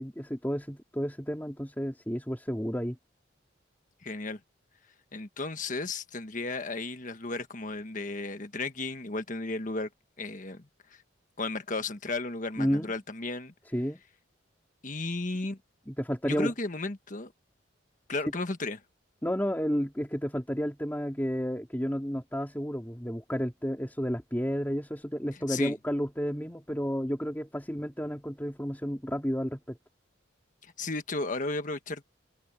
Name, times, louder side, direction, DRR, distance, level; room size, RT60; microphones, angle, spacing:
voice 1, 0.0-3.0 12.6-12.9 13.7-14.0 15.9-16.5 19.2-29.8, equal, 10° left, 3.2 m, -31 dB
voice 2, 4.0-4.4 5.1-9.9 10.2-11.0 11.4-13.5 14.8-15.6 16.2-17.3 18.1-18.8 25.5-25.7 30.6-32.0, left 3 dB, 40° left, 1.5 m, -34 dB
open air
head